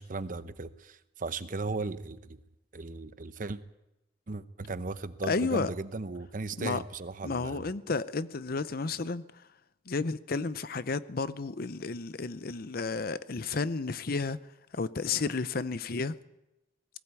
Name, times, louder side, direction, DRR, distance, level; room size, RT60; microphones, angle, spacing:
voice 1, 0.0-2.4 2.7-3.6 4.3-7.6, right 3 dB, 50° right, 0.8 m, -37 dB
voice 2, 5.2-5.7 6.6-6.8 7.2-9.3 9.9-14.4 14.7-16.2, left 4 dB, 55° left, 0.7 m, -32 dB
19.5 x 16.0 x 8.3 m
head